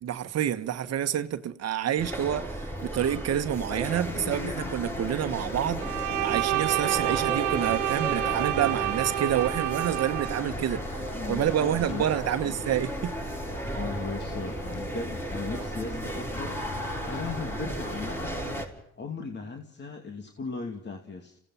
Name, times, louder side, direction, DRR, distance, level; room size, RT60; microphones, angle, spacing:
voice 1, 0.0-13.1, right 10 dB, 60° right, 1.3 m, -28 dB
sound 1, 2.0-18.7, right 1 dB, 10° left, 6.2 m, -34 dB
sound 2, 4.1-18.7, left 9 dB, 90° left, 1.5 m, -43 dB
Bowed string instrument, 5.8-10.4, right 15 dB, 85° right, 1.3 m, -29 dB
voice 2, 11.1-12.6 13.7-16.6 17.0-18.4 19.0-21.4, left 4 dB, 40° left, 2.6 m, -37 dB
29.0 x 17.0 x 5.7 m
cardioid pair, 85°, 29 cm